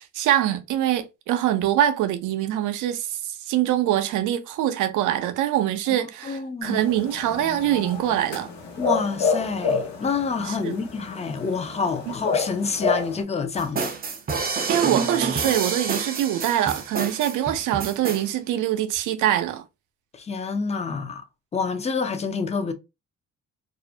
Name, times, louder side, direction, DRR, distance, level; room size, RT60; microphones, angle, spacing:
voice 1, 0.0-8.5 10.5-10.7 12.1-12.2 14.7-19.6, right 12 dB, 80° right, 0.5 m, -24 dB
voice 2, 6.0-6.8 8.8-13.9 20.1-21.2 21.5-22.7, left 5 dB, 20° left, 0.4 m, -27 dB
sound 1, 6.6-13.2, left 4 dB, 70° left, 0.9 m, -29 dB
sound 2, 13.6-18.2, right 5 dB, 30° right, 0.5 m, -28 dB
2.4 x 2.0 x 2.6 m
cardioid pair, 90°, 30 cm